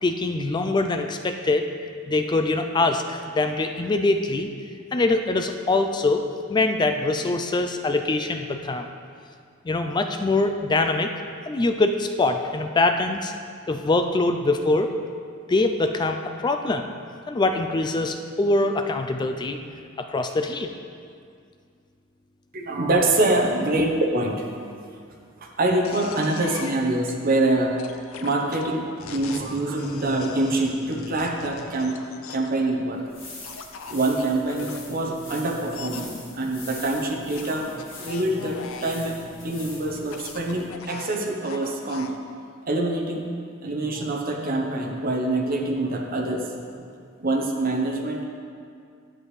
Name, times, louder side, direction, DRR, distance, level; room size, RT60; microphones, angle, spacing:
voice 1, 0.0-1.7 2.1-4.5 4.9-8.9 9.6-11.1 11.5-13.3 13.7-14.9 15.5-16.9 17.3-20.7, left 2 dB, 20° left, 6 dB, 0.3 m, -23 dB
voice 2, 22.5-24.4 25.4-27.8 28.2-32.0 32.3-33.0 33.9-42.1 42.6-43.3 43.6-46.6 47.2-48.2, right 2 dB, 45° right, 0 dB, 0.9 m, -25 dB
sound 1, 25.8-27.1 27.8-32.6 33.4-34.8 35.7-36.1 37.4-39.1 40.0-42.2, left 5 dB, 80° left, 0.5 m, -41 dB
sound 2, 32.9-40.7, left 3 dB, 65° left, 2.1 m, -44 dB
10.5 x 7.7 x 3.2 m, 2.2 s
head